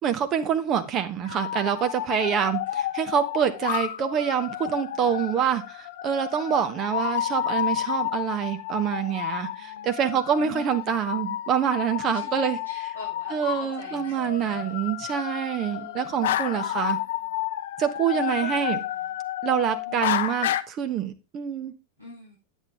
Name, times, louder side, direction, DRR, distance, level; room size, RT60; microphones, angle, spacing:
voice 1, 0.0-12.9 13.3-17.0 17.8-18.8 19.4-21.7, right 8 dB, 30° right, 1.2 m, -26 dB
sound 1, 1.2-20.6, left 12 dB, 55° left, 0.5 m, -31 dB
voice 2, 9.5-10.0 10.4-10.8 12.1-13.4 13.8-14.7 15.7-16.3 16.6-16.8 18.1-18.3 18.6-19.1 19.8-20.2 22.0-22.4, left 2 dB, 85° right, 6.6 m, -44 dB
9.7 x 8.4 x 3.6 m
figure-of-eight pair, 90°, 0 cm